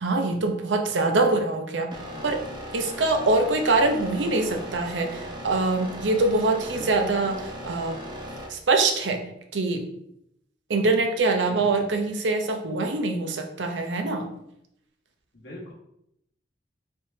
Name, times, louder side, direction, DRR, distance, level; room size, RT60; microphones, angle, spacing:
voice 1, 0.0-2.4 2.7-8.0 8.5-9.2 9.5-9.8 10.7-14.3, right 3 dB, 80° right, 4 dB, 0.6 m, -24 dB
voice 2, 1.9-2.3 6.7-7.1 11.5-11.8 15.3-15.7, left 1 dB, 70° left, -5 dB, 1.4 m, -42 dB
sound 1, 1.9-8.5, equal, 25° right, 0.7 m, -38 dB
4.3 x 3.4 x 2.7 m, 0.76 s
head